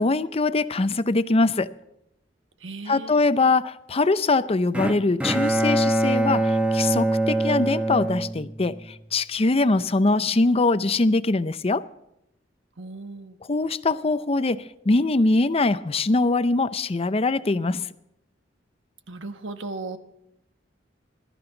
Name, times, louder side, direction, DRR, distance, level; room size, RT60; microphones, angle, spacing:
voice 1, 0.0-1.7 2.9-11.8 13.5-17.9, left 3 dB, 30° left, 0.6 m, -22 dB
voice 2, 2.6-3.2 12.8-13.4 19.1-20.0, right 3 dB, 80° right, 1.2 m, -36 dB
Bowed string instrument, 4.7-9.0, right 1 dB, 5° right, 1.0 m, -23 dB
21.5 x 13.0 x 3.9 m
head